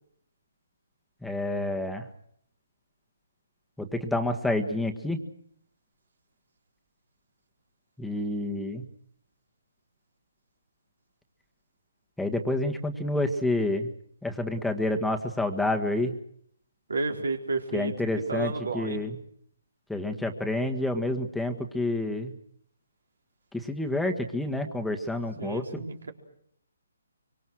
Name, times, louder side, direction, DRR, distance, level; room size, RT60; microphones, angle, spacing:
voice 1, 1.2-2.1 3.8-5.2 8.0-8.8 12.2-13.9 14.2-16.1 17.7-19.2 19.9-22.3 23.5-25.8, left 1 dB, ahead, 4 dB, 1.7 m, -29 dB
voice 2, 16.9-17.9 18.3-19.0 25.4-26.1, right 3 dB, 80° right, 3 dB, 4.3 m, -31 dB
24.5 x 24.5 x 6.4 m, 0.69 s
figure-of-eight pair, 145°, 0 cm